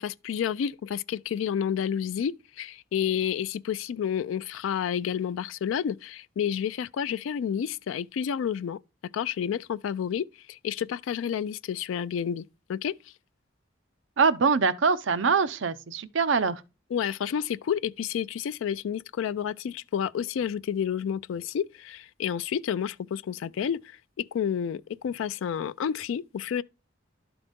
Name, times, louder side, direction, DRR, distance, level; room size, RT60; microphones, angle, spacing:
voice 1, 0.0-12.4 12.7-12.9 16.9-26.6, left 8 dB, 85° left, 0.3 m, -30 dB
voice 2, 14.2-16.6, right 5 dB, 75° right, 0.6 m, -23 dB
11.5 x 3.9 x 3.5 m
head